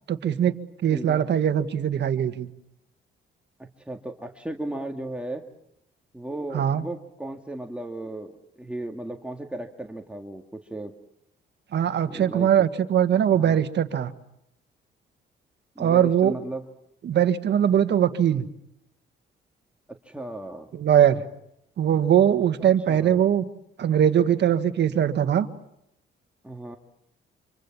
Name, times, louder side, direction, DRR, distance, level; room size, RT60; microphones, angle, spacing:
voice 1, 0.1-0.6 0.8-2.5 6.5-6.8 11.7-14.1 15.8-16.3 17.0-18.5 20.7-21.2 21.8-23.4 23.8-25.5, right 9 dB, 60° right, 9 dB, 1.7 m, -21 dB
voice 2, 0.9-1.2 3.6-5.4 6.1-10.9 12.0-12.5 13.3-13.6 15.8-16.7 19.9-20.7 22.9-23.2 26.4-26.8, right 1 dB, 5° right, 2 dB, 2.0 m, -36 dB
26.5 x 25.0 x 7.3 m, 0.78 s
cardioid pair, 90°, 20 cm